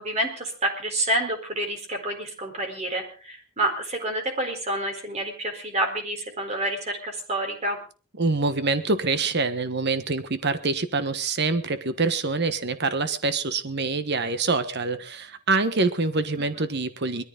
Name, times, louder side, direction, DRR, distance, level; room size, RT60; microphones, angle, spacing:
voice 1, 0.0-7.8 16.4-16.7, right 1 dB, 30° right, 3 dB, 4.3 m, -28 dB
voice 2, 8.2-17.2, right 3 dB, 50° right, 11 dB, 1.3 m, -25 dB
21.0 x 14.0 x 4.0 m, 0.38 s
head